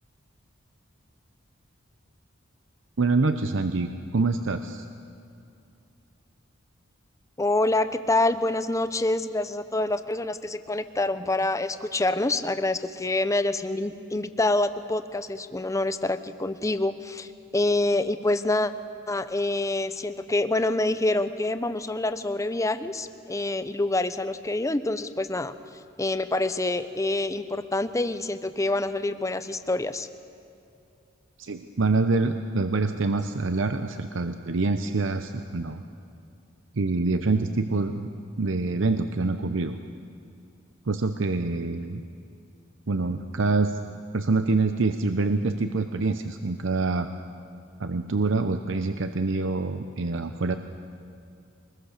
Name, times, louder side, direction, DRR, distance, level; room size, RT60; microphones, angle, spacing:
voice 1, 3.0-4.8 31.4-35.8 36.7-38.1 38.4-39.8 40.9-42.0 42.9-43.8 44.1-47.1 47.8-50.6, right 3 dB, 65° right, 8 dB, 0.7 m, -26 dB
voice 2, 7.4-18.7 19.1-25.5 26.0-30.1, left 2 dB, 15° left, 11 dB, 0.7 m, -26 dB
23.5 x 21.0 x 6.7 m, 2.5 s
head